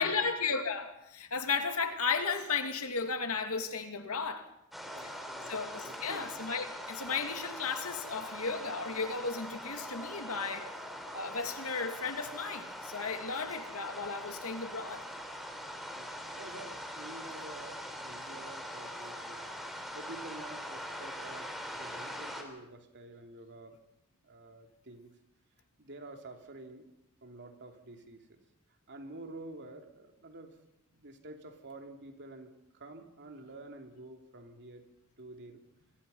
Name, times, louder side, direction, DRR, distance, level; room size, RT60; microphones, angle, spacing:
voice 1, 0.0-4.4 5.0-5.1 5.5-10.7 11.1-15.1, left 5 dB, 70° left, 6 dB, 2.6 m, -34 dB
sound 1, 4.7-22.4, equal, ahead, 3.7 m, -42 dB
voice 2, 4.8-5.6 5.9-6.3 15.9-19.5 19.9-23.8 24.2-25.1 25.8-26.9 27.2-28.4 28.9-30.6 30.9-34.9 35.2-35.6, right 2 dB, 55° right, 4 dB, 3.0 m, -49 dB
27.5 x 22.5 x 5.6 m, 0.84 s
head